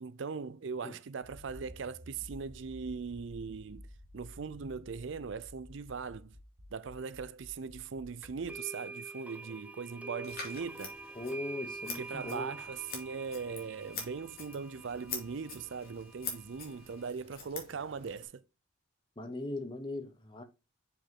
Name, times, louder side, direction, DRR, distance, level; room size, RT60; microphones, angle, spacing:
voice 1, 0.0-3.9 4.1-6.3 6.7-11.0 12.0-18.4, right 5 dB, 65° right, 0.5 m, -40 dB
Accelerating revving vroom, 1.2-8.5, equal, 40° right, 1.3 m, -52 dB
sound 1, 8.2-17.1, right 3 dB, 5° right, 0.4 m, -47 dB
Scissors, 10.2-18.3, left 5 dB, 45° left, 2.5 m, -45 dB
voice 2, 11.2-12.5 19.2-20.4, left 2 dB, 25° left, 1.0 m, -39 dB
6.6 x 5.3 x 3.7 m
head